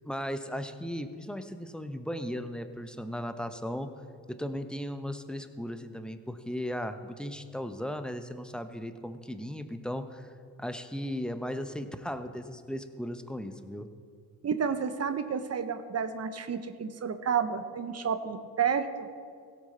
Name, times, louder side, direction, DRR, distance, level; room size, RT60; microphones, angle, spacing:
voice 1, 0.1-3.9 4.3-10.3 10.6-13.9, equal, ahead, 9 dB, 0.8 m, -36 dB
voice 2, 14.4-19.1, right 7 dB, 35° right, 10 dB, 0.9 m, -30 dB
17.0 x 6.6 x 4.3 m, 2.2 s
hypercardioid pair, 60°, 42 cm